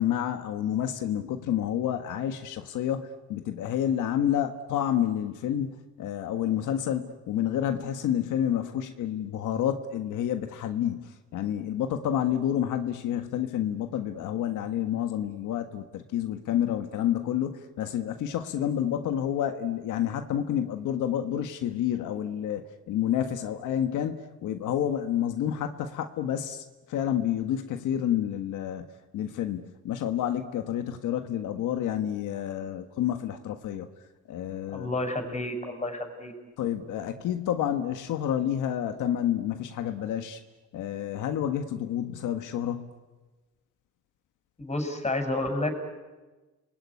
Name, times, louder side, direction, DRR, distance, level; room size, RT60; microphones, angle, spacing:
voice 1, 0.0-28.9 29.1-33.9 34.3-34.9 36.6-40.4 40.7-42.9, left 10 dB, 85° left, 7 dB, 1.5 m, -29 dB
voice 2, 34.7-36.3 44.6-45.7, left 2 dB, 20° left, 6 dB, 6.1 m, -30 dB
29.0 x 20.5 x 9.7 m, 1.2 s
cardioid pair, 90°, 30 cm